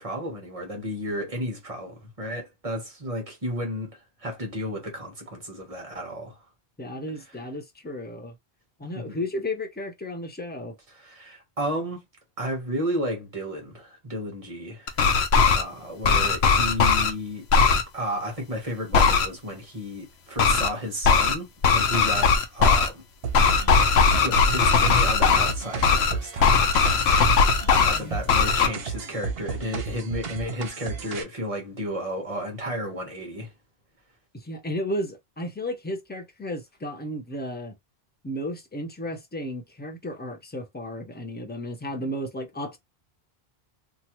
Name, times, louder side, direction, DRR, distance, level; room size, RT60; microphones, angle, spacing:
voice 1, 0.0-6.4 8.9-9.2 10.9-12.0 12.4-15.0 15.5-23.0 23.5-23.8 24.1-26.6 27.8-33.5, equal, 35° right, 1.1 m, -33 dB
voice 2, 6.8-8.3 8.8-10.8 28.0-28.2 34.3-37.7 38.2-42.8, left 1 dB, 15° left, 0.4 m, -33 dB
sound 1, 14.9-15.6 16.0-17.1 17.5-17.8 18.9-19.3 20.4-20.7 21.0-21.4 21.6-22.9 23.3-25.5 25.8-26.1 26.4-28.0 28.3-28.7, left 5 dB, 85° left, 0.9 m, -19 dB
sound 2, 23.2-31.2, right 5 dB, 70° right, 1.0 m, -33 dB
3.0 x 2.4 x 2.9 m
omnidirectional pair, 1.0 m